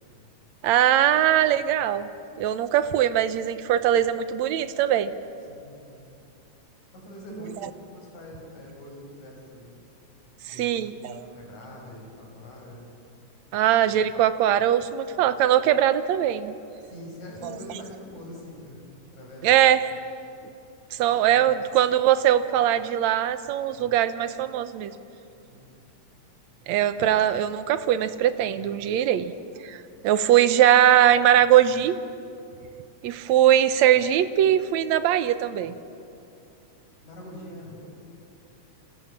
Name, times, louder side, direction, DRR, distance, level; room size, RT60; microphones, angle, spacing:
voice 1, 0.6-2.1 2.4-5.1 10.5-11.3 13.5-16.6 19.4-19.9 20.9-24.9 26.7-29.3 29.6-32.0 33.0-35.8, right 11 dB, 75° right, 11 dB, 2.2 m, -21 dB
voice 2, 5.5-6.0 6.9-7.7 7.9-9.8 10.5-12.9 16.8-18.8 19.1-19.6 21.1-21.5 25.5-25.7 37.0-37.9, left 1 dB, 70° left, -1 dB, 8.6 m, -43 dB
29.0 x 27.5 x 7.4 m, 2.6 s
omnidirectional pair, 3.4 m